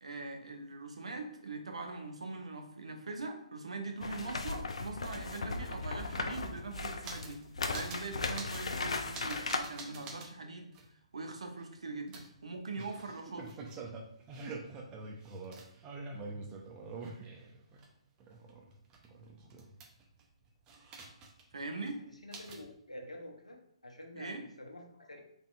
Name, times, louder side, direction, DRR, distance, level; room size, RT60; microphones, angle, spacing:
voice 1, 0.0-7.4 7.7-13.6 21.5-22.0 24.1-24.4, right 3 dB, 70° right, 4 dB, 0.8 m, -42 dB
sound 1, 4.0-9.6, left 3 dB, 65° left, 0.5 m, -37 dB
sound 2, 6.3-7.4 7.7-8.1 8.3-8.7 9.1-10.3 10.7-10.9 12.1-17.9 18.2-20.2 20.7-21.5 21.8-21.9 22.3-22.7, right 3 dB, 20° right, 0.6 m, -46 dB
voice 2, 22.2-25.2, left 1 dB, 85° left, 2 dB, 0.8 m, -48 dB
3.9 x 3.7 x 2.4 m, 0.72 s
figure-of-eight pair, 130°, 3 cm